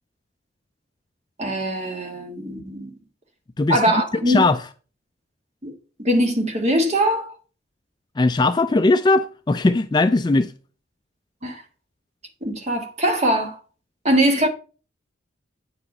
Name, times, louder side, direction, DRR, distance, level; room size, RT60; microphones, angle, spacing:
voice 1, 1.4-2.9 3.7-4.4 5.6-5.7 6.0-7.3 11.4-11.6 12.4-13.6 14.0-14.5, right 1 dB, 35° right, 1.6 m, -21 dB
voice 2, 4.3-4.6 8.2-10.5, left 2 dB, 20° left, 0.3 m, -19 dB
8.7 x 4.8 x 5.4 m
head